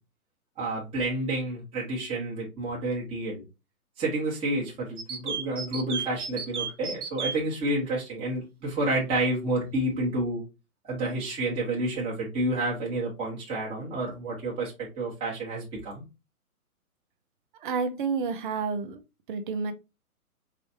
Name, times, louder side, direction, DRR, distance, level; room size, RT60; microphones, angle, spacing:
voice 1, 0.6-3.4 4.0-10.4 10.8-16.0, right 2 dB, 10° right, -6 dB, 1.3 m, -30 dB
sound 1, 5.0-7.3, right 6 dB, 80° right, 1.3 m, -32 dB
voice 2, 17.6-19.0 19.3-19.7, right 5 dB, 35° right, 10 dB, 0.7 m, -29 dB
5.0 x 3.3 x 2.8 m, 0.26 s
hypercardioid pair, 145°, 45 cm